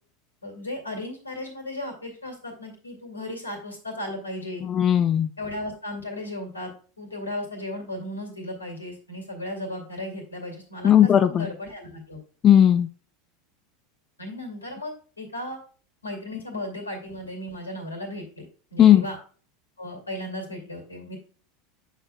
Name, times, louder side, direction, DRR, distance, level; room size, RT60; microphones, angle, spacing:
voice 1, 0.4-4.7 5.4-12.2 14.2-15.6 16.0-19.2 19.8-21.2, left 1 dB, 85° left, 3 dB, 2.4 m, -35 dB
voice 2, 4.6-5.3 10.8-11.5 12.4-12.9 18.8-19.0, left 10 dB, 35° left, 11 dB, 0.5 m, -16 dB
9.0 x 6.8 x 2.3 m, 0.39 s
figure-of-eight pair, 80°, 0 cm